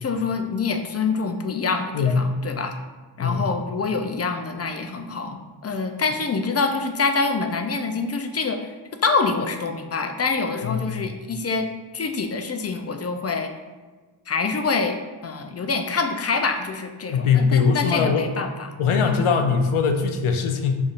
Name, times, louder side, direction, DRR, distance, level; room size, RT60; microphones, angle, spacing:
voice 1, 0.0-2.7 3.2-8.7 9.0-11.7 11.9-13.5 14.3-15.0 15.2-18.8 19.0-19.2, left 4 dB, 35° left, 6 dB, 0.4 m, -26 dB
voice 2, 10.6-11.0 17.1-18.2 18.8-20.8, left 6 dB, 80° left, 5 dB, 0.6 m, -21 dB
5.4 x 2.6 x 2.4 m, 1.4 s
cardioid pair, 40°, 49 cm